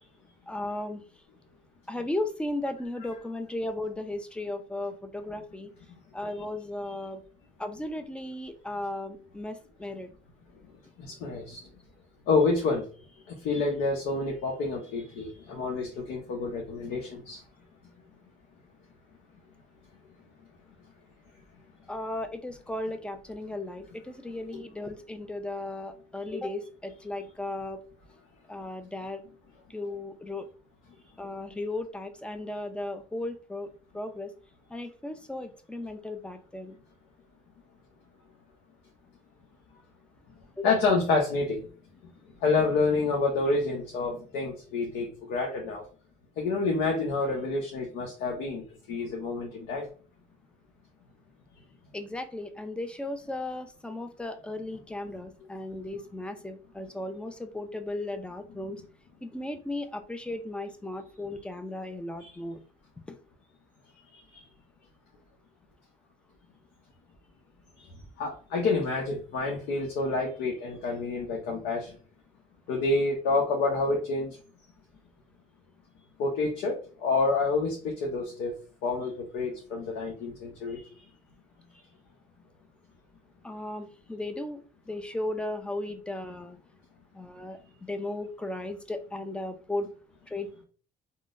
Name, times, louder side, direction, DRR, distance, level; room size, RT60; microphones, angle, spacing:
voice 1, 0.5-1.0 1.9-5.7 6.1-7.2 7.6-10.1 21.9-27.8 28.5-29.2 29.7-30.5 31.2-33.7 33.9-34.3 34.7-36.8 40.6-40.7 51.9-58.8 59.2-62.6 63.1-63.2 83.4-84.6 84.9-86.6 87.1-89.9 90.3-90.6, left 2 dB, 5° left, 8 dB, 0.4 m, -36 dB
voice 2, 11.0-11.7 12.3-12.9 13.3-17.4 40.6-41.7 42.4-45.8 46.4-49.9 62.2-62.3 64.1-64.4 67.8-67.9 68.2-71.9 72.7-74.4 76.2-78.5 78.8-80.8, left 3 dB, 80° left, 0 dB, 0.7 m, -28 dB
3.7 x 2.0 x 2.4 m, 0.39 s
cardioid pair, 110°, 17 cm